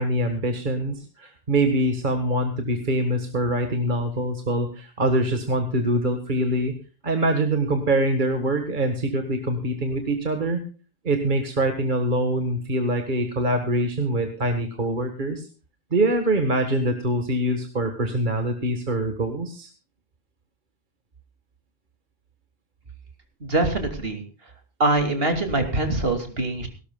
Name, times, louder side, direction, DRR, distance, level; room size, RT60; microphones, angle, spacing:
voice 1, 0.0-6.7 7.0-10.6 11.0-15.5 15.9-19.7, right 1 dB, 50° right, 6 dB, 1.8 m, -24 dB
voice 2, 23.4-24.2 24.8-26.7, right 2 dB, 65° right, 6 dB, 3.0 m, -23 dB
18.0 x 18.0 x 2.3 m, 0.34 s
omnidirectional pair, 1.1 m